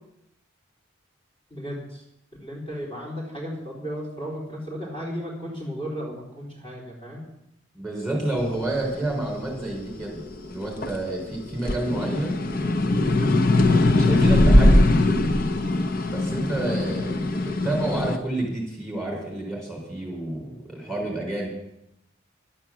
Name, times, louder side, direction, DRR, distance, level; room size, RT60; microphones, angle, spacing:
voice 1, 1.5-2.0 2.4-7.2, equal, 30° left, -5 dB, 3.9 m, -34 dB
voice 2, 7.7-10.2 10.5-12.4 13.6-14.8 16.1-21.5, right 1 dB, 5° left, -3 dB, 4.3 m, -29 dB
sound 1, 8.5-11.1 11.5-18.2, left 1 dB, 50° left, 0.8 m, -20 dB
12.0 x 9.8 x 7.5 m, 0.81 s
head